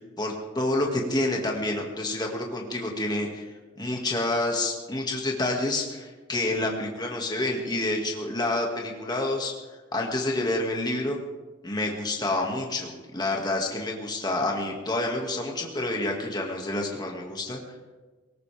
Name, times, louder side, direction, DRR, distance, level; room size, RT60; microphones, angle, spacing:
voice 1, 0.0-9.5 9.9-11.2 11.6-17.6, left 2 dB, 20° left, 0 dB, 2.1 m, -28 dB
19.0 x 18.5 x 3.5 m, 1.3 s
head